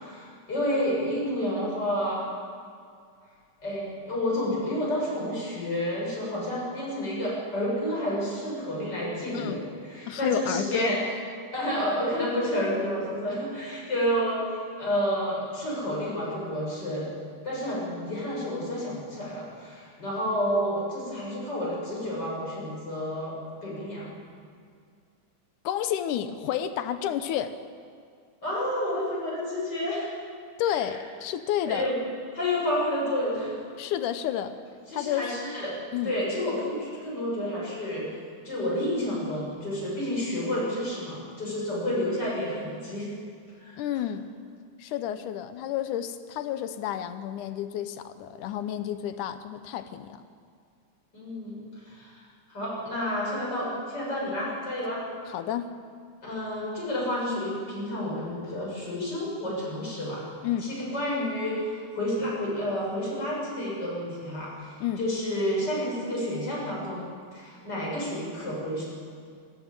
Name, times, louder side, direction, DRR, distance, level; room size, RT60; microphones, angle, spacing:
voice 1, 0.0-2.2 3.6-11.0 11.5-14.4 14.8-17.1 17.4-23.4 23.6-24.1 28.4-30.1 31.7-32.0 32.3-33.5 34.9-35.7 36.0-38.1 38.4-43.1 43.6-43.8 51.1-51.6 51.8-52.2 52.5-55.0 56.2-60.3 60.6-67.1 67.3-68.9, equal, 30° left, -5 dB, 7.4 m, -30 dB
voice 2, 9.3-9.7 10.1-10.9 25.6-27.6 30.6-31.9 33.8-34.6 34.9-35.3 35.9-36.1 43.8-44.3 44.8-50.2 55.3-55.7 60.4-60.7 64.8-65.0, left 10 dB, 85° left, 11 dB, 2.3 m, -30 dB
20.0 x 14.5 x 8.9 m, 2.2 s
omnidirectional pair, 3.5 m